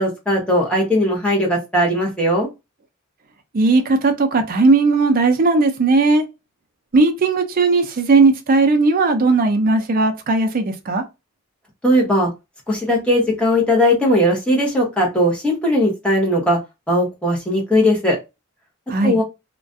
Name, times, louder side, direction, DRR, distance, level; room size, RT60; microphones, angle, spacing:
voice 1, 0.0-2.5 11.8-12.3 12.7-16.6 16.9-18.2 19.0-19.2, equal, 5° left, 0.9 m, -18 dB
voice 2, 3.5-6.3 6.9-11.0 18.9-19.2, right 3 dB, 40° right, 0.4 m, -16 dB
2.4 x 2.1 x 2.5 m
head